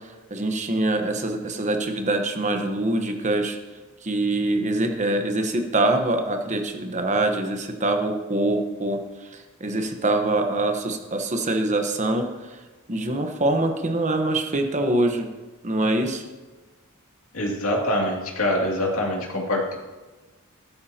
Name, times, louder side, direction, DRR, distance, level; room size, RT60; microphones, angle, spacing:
voice 1, 0.3-3.6 4.0-9.0 9.6-12.3 12.9-15.3 15.6-16.2, right 2 dB, 35° right, 5 dB, 1.1 m, -24 dB
voice 2, 17.3-19.8, left 1 dB, 70° left, -2 dB, 2.5 m, -24 dB
14.5 x 12.0 x 2.9 m, 1.3 s
head